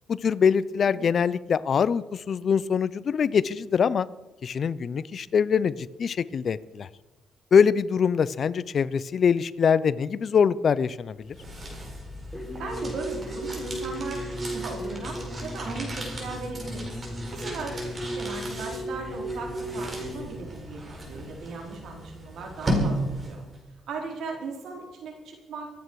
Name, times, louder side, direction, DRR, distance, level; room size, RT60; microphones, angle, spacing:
voice 1, 0.1-4.1 4.4-6.9 7.5-11.4, left 6 dB, 50° left, 18 dB, 0.6 m, -23 dB
sound 1, 11.0-23.6, equal, 30° right, 4.6 m, -35 dB
sound 2, 12.3-20.2, equal, ahead, 4.1 m, -35 dB
voice 2, 12.6-16.9 17.3-23.4 23.9-25.7, right 4 dB, 75° right, 1 dB, 4.4 m, -38 dB
25.0 x 9.0 x 4.8 m, 1.1 s
cardioid pair, 90°, 0 cm